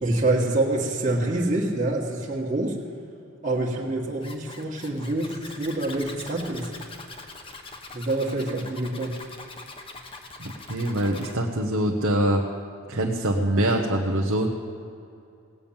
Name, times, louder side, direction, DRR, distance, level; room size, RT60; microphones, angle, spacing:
voice 1, 0.0-2.8 3.4-6.7 7.9-9.2, right 2 dB, 35° right, -4 dB, 1.7 m, -26 dB
Zipper (clothing), 4.2-11.4, left 3 dB, 25° left, 1.0 m, -43 dB
voice 2, 10.4-12.4 12.9-14.5, right 1 dB, 65° right, 0 dB, 1.0 m, -24 dB
18.0 x 7.2 x 8.8 m, 2.6 s
head